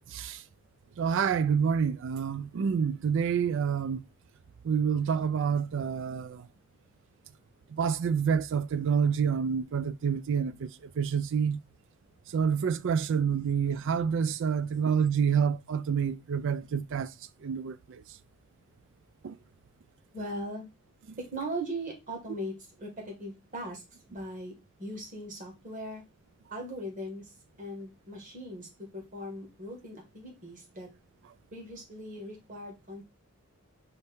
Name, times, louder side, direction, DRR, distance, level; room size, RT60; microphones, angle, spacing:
voice 1, 1.0-4.0 4.7-6.4 7.8-10.7 11.0-11.6 12.3-17.1 17.4-17.8 19.2-19.4, right 7 dB, 60° right, 0.4 m, -28 dB
voice 2, 20.1-20.7 21.2-26.0 26.5-27.3 27.6-30.9 31.5-33.0, right 1 dB, 35° right, 1.5 m, -39 dB
5.5 x 2.7 x 3.4 m
head